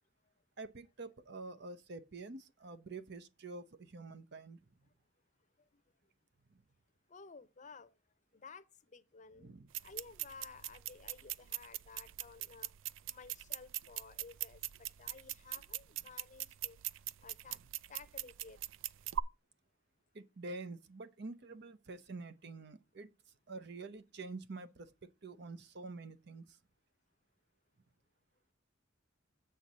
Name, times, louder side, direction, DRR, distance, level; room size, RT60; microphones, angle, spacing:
voice 1, 0.6-4.7 6.5-6.6 9.4-9.7 20.1-23.1 23.5-26.6, right 3 dB, 60° right, 0.8 m, -47 dB
voice 2, 7.1-7.9 8.3-9.5 9.8-12.7 13.1-16.8 17.2-17.6 17.9-18.6, left 4 dB, 40° left, 0.7 m, -54 dB
sound 1, 9.7-19.2, right 13 dB, 75° right, 0.4 m, -42 dB
7.3 x 4.6 x 6.7 m
head